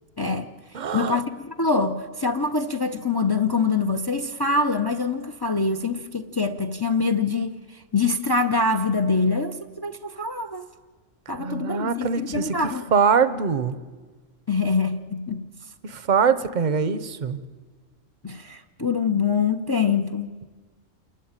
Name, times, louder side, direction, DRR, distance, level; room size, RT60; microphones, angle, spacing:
voice 1, 0.2-0.5 0.9-10.7 11.3-12.8 14.5-15.4 18.2-20.3, left 4 dB, 25° left, 0.6 m, -24 dB
voice 2, 0.7-1.2 11.4-12.6 12.9-13.7 15.8-17.4, right 6 dB, 40° right, 0.9 m, -23 dB
28.0 x 12.0 x 8.9 m
omnidirectional pair, 1.3 m